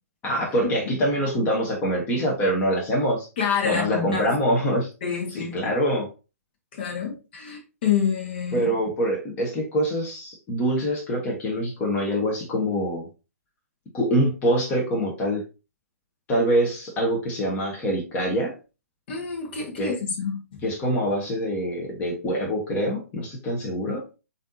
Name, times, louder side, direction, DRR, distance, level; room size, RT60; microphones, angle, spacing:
voice 1, 0.2-3.3 3.6-4.9 5.4-6.1 8.5-13.1 13.9-15.4 16.3-18.5 19.8-19.9 20.6-24.0, equal, 15° left, 1.1 m, -24 dB
voice 2, 3.4-4.3 5.0-5.7 6.7-8.7 19.1-20.6, left 7 dB, 40° left, 1.2 m, -27 dB
7.1 x 2.8 x 2.7 m
figure-of-eight pair, 130°, 9 cm